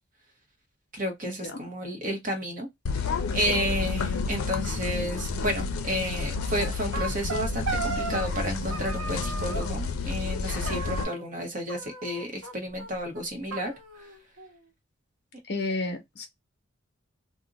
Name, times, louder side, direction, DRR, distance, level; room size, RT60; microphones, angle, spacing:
voice 1, 0.9-2.7 3.0-14.1, equal, 40° right, 0.8 m, -32 dB
sound 1, 2.9-11.0, left 4 dB, 85° left, 0.5 m, -30 dB
sound 2, 6.6-8.5 8.7-9.7 10.7-11.4 11.7-12.5 12.8-12.9 13.1-13.2 13.5-14.6, right 4 dB, 75° right, 1.1 m, -36 dB
voice 2, 15.5-16.3, left 2 dB, 50° left, 0.8 m, -31 dB
2.5 x 2.1 x 3.8 m
head